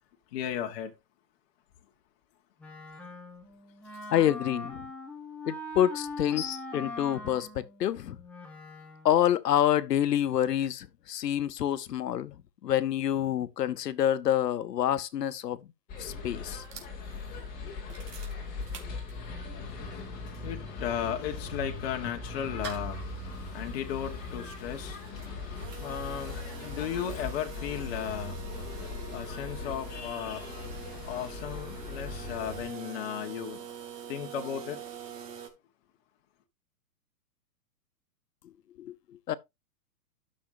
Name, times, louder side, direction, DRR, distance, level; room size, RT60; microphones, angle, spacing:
voice 1, 0.3-0.9 6.3-6.6 19.6-33.6 34.1-34.8, left 9 dB, 40° left, 1.4 m, -36 dB
Wind instrument woodwind instrument, 2.6-9.2, left 2 dB, 5° left, 0.8 m, -42 dB
voice 2, 4.1-4.9 5.5-6.4 6.7-8.2 9.0-12.3 12.6-15.6 16.0-16.6 38.8-39.0 39.3-39.4, left 11 dB, 80° left, 1.0 m, -27 dB
sound 1, 15.9-32.7, left 3 dB, 20° left, 2.3 m, -39 dB
sound 2, 16.5-19.5 19.9-20.0 20.2-35.5, right 8 dB, 75° right, 3.0 m, -46 dB
13.0 x 6.4 x 2.7 m
hypercardioid pair, 155°, 48 cm